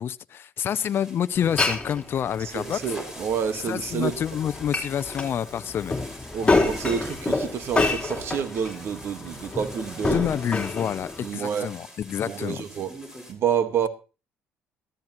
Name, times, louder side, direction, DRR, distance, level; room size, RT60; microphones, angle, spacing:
voice 1, 0.0-2.8 3.7-6.1 6.4-6.6 10.0-12.6, left 9 dB, 55° left, 0.6 m, -28 dB
sound 1, 0.6-13.3, equal, 10° right, 5.0 m, -45 dB
Glass, 1.4-11.3, left 3 dB, 20° left, 3.6 m, -29 dB
voice 2, 2.5-4.2 6.3-10.3 11.2-11.7 12.2-12.9 13.3-13.9, right 8 dB, 60° right, 1.5 m, -28 dB
14.0 x 13.5 x 3.0 m
supercardioid pair, 70°, 5 cm